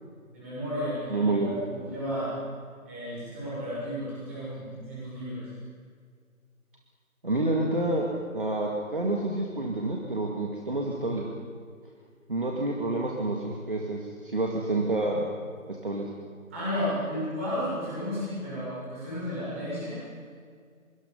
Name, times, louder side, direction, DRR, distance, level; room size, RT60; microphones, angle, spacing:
voice 1, 0.3-2.3 2.9-5.5 16.5-20.0, equal, 10° right, -10 dB, 7.0 m, -33 dB
voice 2, 1.1-1.5 7.2-8.1 8.3-11.3 12.3-15.3 15.7-16.1, right 2 dB, 40° right, -1 dB, 2.3 m, -28 dB
24.5 x 24.0 x 5.5 m, 2.1 s
figure-of-eight pair, 170°, 42 cm